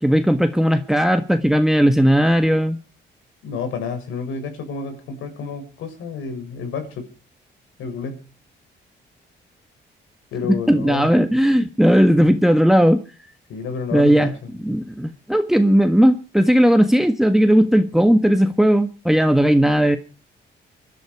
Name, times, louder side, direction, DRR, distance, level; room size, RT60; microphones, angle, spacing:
voice 1, 0.0-2.8 10.7-13.0 13.9-14.3 14.6-20.0, equal, ahead, 1.5 m, -16 dB
voice 2, 3.4-7.1 7.8-8.2 10.3-11.1 13.5-14.5, left 5 dB, 90° left, 6.9 m, -30 dB
25.5 x 12.0 x 4.8 m
cardioid pair, 90°, 20 cm